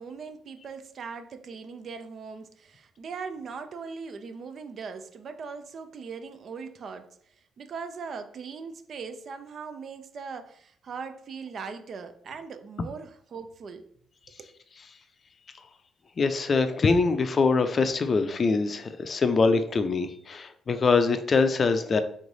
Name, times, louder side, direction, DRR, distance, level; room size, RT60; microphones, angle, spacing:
voice 1, 0.0-7.1 7.6-13.9 14.4-14.5, right 5 dB, 55° right, 0.5 m, -40 dB
voice 2, 16.2-22.0, left 4 dB, 40° left, 0.4 m, -23 dB
3.5 x 3.1 x 4.0 m
cardioid pair, 90°, 0 cm